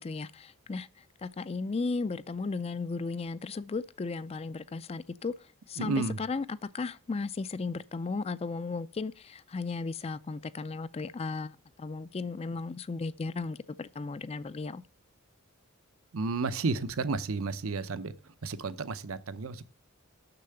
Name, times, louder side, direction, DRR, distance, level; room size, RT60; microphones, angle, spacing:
voice 1, 0.0-14.8, left 4 dB, 30° left, 0.4 m, -35 dB
voice 2, 5.8-6.2 16.1-18.1 18.4-19.6, right 3 dB, 75° right, 0.7 m, -32 dB
6.8 x 6.6 x 7.8 m
head